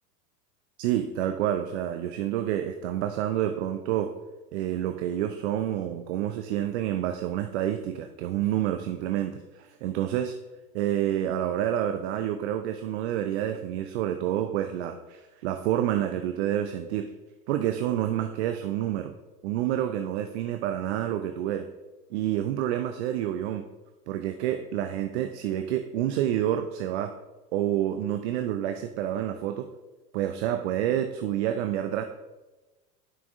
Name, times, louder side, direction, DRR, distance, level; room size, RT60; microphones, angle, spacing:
voice 1, 0.8-4.1 4.5-10.4 10.7-17.1 17.5-19.1 19.4-21.7 22.1-23.7 24.1-27.2 27.5-29.7 30.1-32.0, right 11 dB, 45° right, 8 dB, 0.4 m, -28 dB
9.6 x 5.8 x 2.6 m, 1.1 s
figure-of-eight pair, 85°, 49 cm